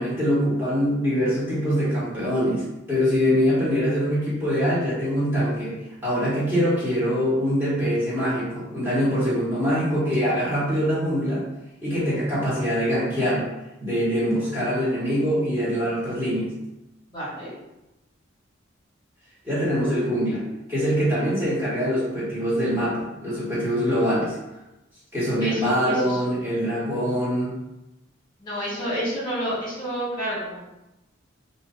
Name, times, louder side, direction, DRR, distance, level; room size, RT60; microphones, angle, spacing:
voice 1, 0.0-5.7 6.0-11.4 11.8-13.4 13.8-16.5 19.4-20.4 20.7-24.4 25.1-27.5, equal, 10° right, -11 dB, 1.4 m, -23 dB
voice 2, 17.1-17.5 25.4-25.5 28.4-30.6, equal, 25° left, -9 dB, 1.5 m, -29 dB
3.0 x 2.7 x 3.8 m, 0.95 s
head